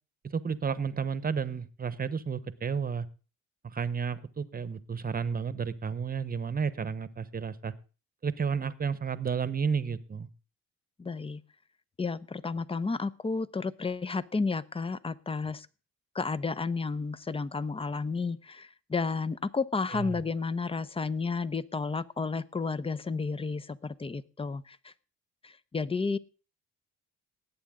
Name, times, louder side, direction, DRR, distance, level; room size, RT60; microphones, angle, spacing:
voice 1, 0.3-3.1 3.6-7.7 8.2-10.3 19.9-20.2, right 6 dB, 30° right, 14 dB, 1.0 m, -32 dB
voice 2, 11.0-11.4 12.0-15.7 16.1-24.9 25.4-26.2, left 4 dB, 20° left, 15 dB, 0.7 m, -32 dB
19.0 x 8.5 x 3.8 m, 0.35 s
cardioid pair, 90°, 30 cm